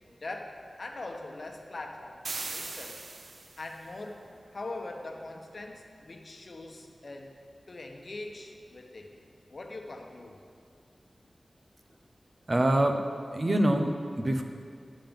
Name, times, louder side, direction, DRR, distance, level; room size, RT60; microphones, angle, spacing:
voice 1, 0.1-3.0 3.6-7.3 7.7-9.1 9.5-10.4, left 2 dB, 55° left, 2 dB, 1.1 m, -42 dB
sound 1, 2.2-3.8, right 3 dB, 85° right, 0.7 m, -39 dB
voice 2, 12.5-13.0 13.3-14.4, right 1 dB, 35° right, 5 dB, 0.8 m, -25 dB
11.5 x 7.5 x 5.3 m, 2.3 s
wide cardioid pair, 95°, 0 cm